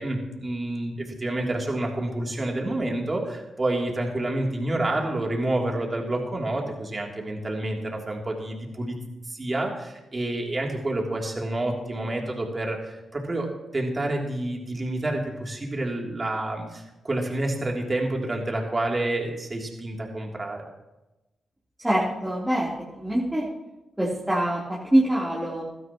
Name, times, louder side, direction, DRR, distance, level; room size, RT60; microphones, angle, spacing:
voice 1, 0.0-9.0 9.3-20.6, right 1 dB, 35° right, 0 dB, 3.1 m, -28 dB
voice 2, 21.8-22.7 23.0-23.5 24.0-25.6, right 1 dB, 10° right, -7 dB, 3.6 m, -24 dB
16.5 x 12.5 x 3.1 m, 1.0 s
supercardioid pair, 50°, 0 cm